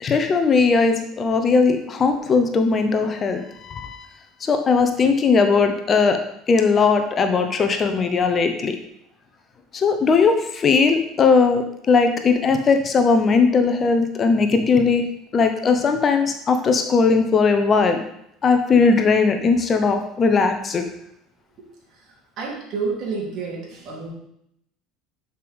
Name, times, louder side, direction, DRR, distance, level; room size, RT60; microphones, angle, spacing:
voice 1, 0.0-4.1 4.4-6.2 6.5-8.8 9.7-15.1 15.3-18.0 18.4-20.8, left 4 dB, 35° left, 7 dB, 0.9 m, -18 dB
voice 2, 22.4-24.1, right 4 dB, 50° right, -2 dB, 3.1 m, -29 dB
11.0 x 5.5 x 3.5 m, 0.75 s
figure-of-eight pair, 65°, 0 cm